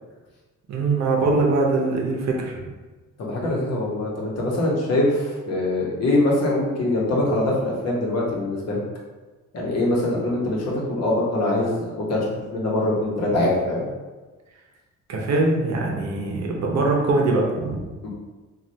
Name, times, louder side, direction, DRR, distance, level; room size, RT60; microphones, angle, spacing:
voice 1, 0.7-2.6 15.1-17.8, right 3 dB, 60° right, -1 dB, 0.8 m, -22 dB
voice 2, 3.2-8.8 9.5-12.2 12.5-13.9 18.0-18.1, left 1 dB, 55° left, -4 dB, 1.0 m, -23 dB
3.1 x 2.4 x 2.6 m, 1.3 s
cardioid pair, 90°, 30 cm